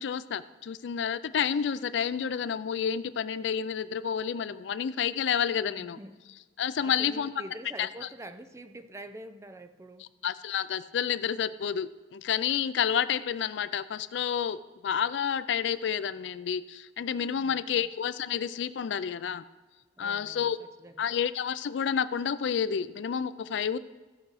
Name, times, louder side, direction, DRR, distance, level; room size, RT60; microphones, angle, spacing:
voice 1, 0.0-6.0 6.6-7.3 7.8-7.9 10.2-19.4 20.0-20.6 21.0-23.8, left 8 dB, 70° left, 15 dB, 0.4 m, -30 dB
voice 2, 5.8-6.2 6.8-10.1 17.3-17.9 20.0-21.1, right 1 dB, 15° right, 10 dB, 0.5 m, -46 dB
15.0 x 6.1 x 4.7 m, 1.3 s
head